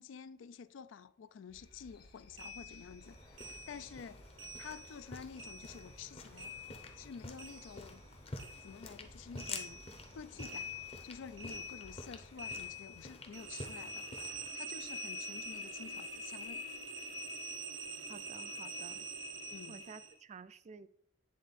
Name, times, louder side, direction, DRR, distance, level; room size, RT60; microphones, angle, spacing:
voice 1, 0.0-4.2 4.6-6.5 6.9-8.0 8.6-9.8 10.1-10.7 11.0-14.1 14.5-16.6 19.5-19.8, left 6 dB, 85° left, 0.4 m, -50 dB
sound 1, 1.5-12.7, left 1 dB, 55° left, 1.5 m, -60 dB
sound 2, 2.4-5.1 5.4-8.1 8.4-20.2, equal, 75° right, 0.9 m, -46 dB
sound 3, 3.0-14.5, left 3 dB, 30° left, 0.7 m, -50 dB
voice 2, 18.1-19.1 19.7-20.9, right 5 dB, 40° right, 0.3 m, -52 dB
8.7 x 3.5 x 4.1 m
head